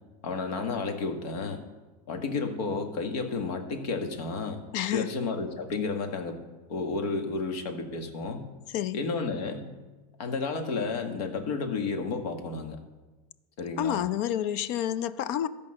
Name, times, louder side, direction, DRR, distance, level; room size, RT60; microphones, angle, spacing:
voice 1, 0.2-1.6 2.1-4.7 4.9-6.4 6.7-8.5 8.9-9.7 10.2-12.8 13.6-14.0, left 4 dB, 65° left, 5 dB, 1.7 m, -31 dB
voice 2, 4.7-5.1 8.7-9.0 13.8-15.5, left 11 dB, 50° left, 15 dB, 0.5 m, -29 dB
13.5 x 5.3 x 7.7 m, 1.2 s
supercardioid pair, 150°, 21 cm